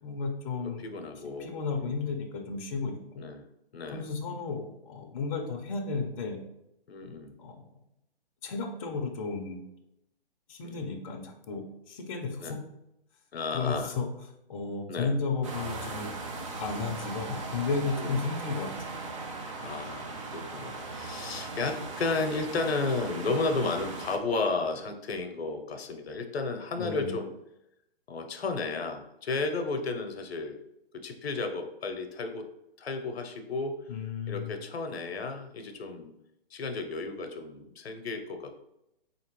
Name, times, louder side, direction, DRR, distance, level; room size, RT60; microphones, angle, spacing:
voice 1, 0.0-0.8 1.4-3.2 3.9-6.4 7.4-7.6 8.4-9.6 10.5-12.6 13.5-14.1 14.5-16.1 16.6-18.7 26.7-27.2 33.9-34.5, left 4 dB, 35° left, 3 dB, 0.5 m, -33 dB
voice 2, 0.8-1.5 1.8-1.9 3.2-3.4 3.7-4.1 6.9-7.3 10.6-10.9 12.4-12.6 13.3-13.9 14.9-15.1 17.9-18.2 19.6-27.3 28.1-30.6 30.9-32.5 32.8-33.8 34.3-36.1 36.5-38.6, left 3 dB, 80° left, 6 dB, 0.7 m, -33 dB
sound 1, 15.4-24.2, right 3 dB, 35° right, 0.4 m, -38 dB
4.1 x 2.9 x 2.9 m, 0.86 s
hypercardioid pair, 145°, 31 cm